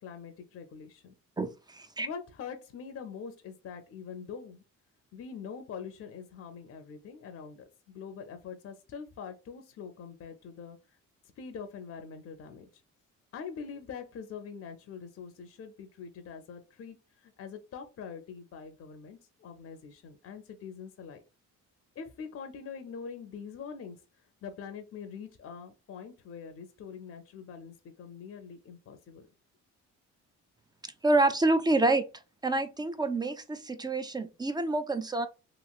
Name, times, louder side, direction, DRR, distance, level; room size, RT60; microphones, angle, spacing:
voice 1, 0.0-1.1 2.0-4.6 5.1-7.6 7.9-10.8 11.4-12.8 13.3-21.2 22.0-24.0 24.4-29.3, left 6 dB, 50° left, 0.6 m, -44 dB
voice 2, 1.4-2.1 30.8-32.1 32.4-35.3, right 2 dB, 15° right, 0.3 m, -27 dB
2.9 x 2.8 x 2.4 m
cardioid pair, 90°, 30 cm